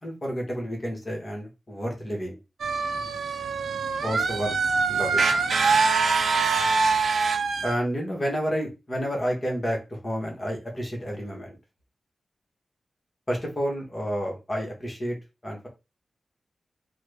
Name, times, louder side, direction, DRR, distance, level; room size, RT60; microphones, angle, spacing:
voice 1, 0.0-2.4 4.0-4.5 4.9-5.3 7.6-11.6 13.3-15.2 15.4-15.7, equal, 25° left, 0 dB, 1.1 m, -30 dB
sound 1, 2.6-7.7, right 4 dB, 80° right, 0.5 m, -24 dB
3.3 x 2.1 x 3.3 m, 0.27 s
wide cardioid pair, 135°, 0 cm